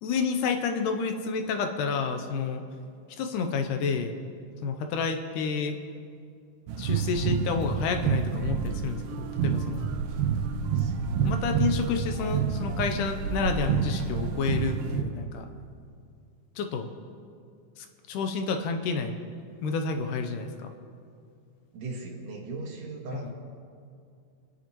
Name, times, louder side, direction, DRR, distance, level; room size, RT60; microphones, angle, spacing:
voice 1, 0.0-2.6 3.2-4.2 4.6-5.8 6.8-9.9 11.2-15.5 16.6-16.9 17.8-19.2 19.6-20.7 23.2-23.3, left 5 dB, 80° left, 6 dB, 2.3 m, -30 dB
sound 1, 6.7-15.0, right 7 dB, 85° right, 2.4 m, -28 dB
voice 2, 11.8-12.3 21.7-23.3, right 3 dB, 55° right, -1 dB, 2.8 m, -39 dB
26.0 x 10.0 x 3.0 m, 2.3 s
omnidirectional pair, 3.7 m